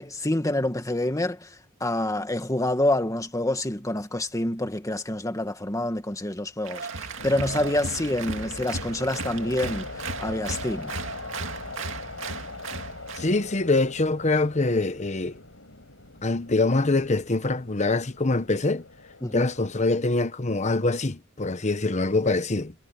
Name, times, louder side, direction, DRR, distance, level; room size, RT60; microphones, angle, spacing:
voice 1, 0.0-10.9 19.2-19.5, left 1 dB, 15° left, 1.9 m, -27 dB
Applause, 6.6-13.3, right 3 dB, 70° right, 2.4 m, -36 dB
sound 1, 7.2-19.9, left 3 dB, 80° left, 6.2 m, -41 dB
voice 2, 13.2-15.4 16.2-18.8 19.3-22.7, left 2 dB, 35° left, 1.1 m, -24 dB
head